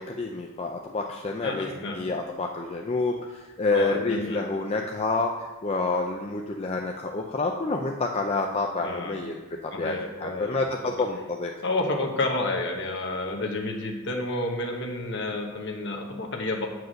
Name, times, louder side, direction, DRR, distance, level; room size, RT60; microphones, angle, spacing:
voice 1, 0.0-1.7 2.0-9.4 9.6-9.9 10.2-11.5, left 3 dB, 30° left, 2 dB, 0.4 m, -28 dB
voice 2, 1.4-2.1 3.7-4.4 8.7-9.3 9.7-10.6 11.6-16.7, left 2 dB, 55° left, 1 dB, 1.2 m, -30 dB
7.9 x 4.7 x 6.4 m, 1.2 s
head